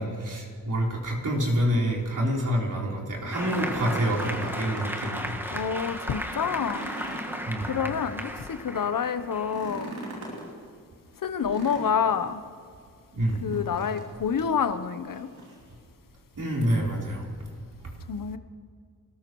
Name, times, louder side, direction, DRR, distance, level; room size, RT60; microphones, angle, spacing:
voice 1, 0.0-5.3 7.5-7.7 13.1-13.5 16.4-17.2, equal, 55° right, -2 dB, 4.0 m, -27 dB
sound 1, 3.2-5.4 5.8-5.9 6.3-8.2 9.4-10.5 11.4-12.3 13.5-14.1 14.4-14.5 15.1-15.7 16.8-16.9, right 2 dB, 90° right, 3.5 m, -40 dB
Applause, 3.3-10.5, equal, 5° right, 1.6 m, -36 dB
voice 2, 5.5-6.9 7.7-9.9 11.2-12.4 13.4-15.3 18.1-18.4, left 7 dB, 60° left, 11 dB, 0.9 m, -28 dB
26.5 x 13.5 x 3.1 m, 2.1 s
supercardioid pair, 45°, 37 cm